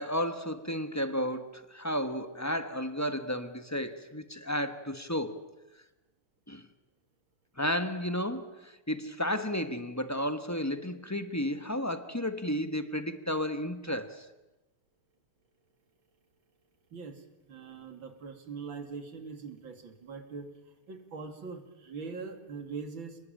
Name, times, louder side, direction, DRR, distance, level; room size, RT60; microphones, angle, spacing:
voice 1, 0.0-5.4 6.5-6.6 7.6-14.3, equal, 10° left, 1.0 m, -33 dB
voice 2, 16.9-20.5 20.9-23.2, right 5 dB, 65° right, 3.2 m, -42 dB
29.5 x 20.5 x 9.0 m
omnidirectional pair, 2.3 m